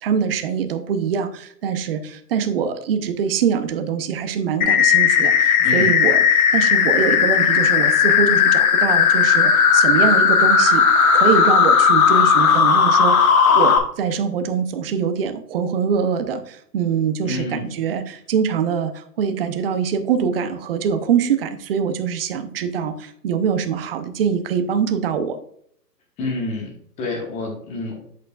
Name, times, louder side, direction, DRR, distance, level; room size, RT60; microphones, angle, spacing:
voice 1, 0.0-6.2 6.5-10.9 11.1-25.4, right 7 dB, 35° right, 9 dB, 0.7 m, -23 dB
sound 1, 4.6-13.8, left 6 dB, 55° left, 1.5 m, -15 dB
voice 2, 5.6-5.9 17.2-17.7 26.2-28.0, left 2 dB, 15° left, 2 dB, 1.0 m, -28 dB
8.4 x 6.4 x 2.3 m, 0.65 s
hypercardioid pair, 150°, 49 cm